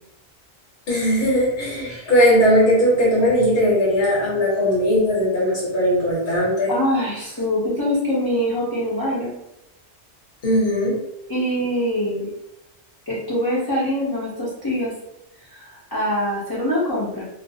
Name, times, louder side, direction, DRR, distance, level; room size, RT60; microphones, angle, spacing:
voice 1, 0.9-6.7 10.4-10.9, equal, 65° left, -6 dB, 1.1 m, -18 dB
voice 2, 6.7-9.3 11.3-12.3 13.1-14.9 15.5-17.2, equal, 30° left, -8 dB, 0.5 m, -24 dB
2.5 x 2.2 x 2.6 m, 0.85 s
omnidirectional pair, 1.2 m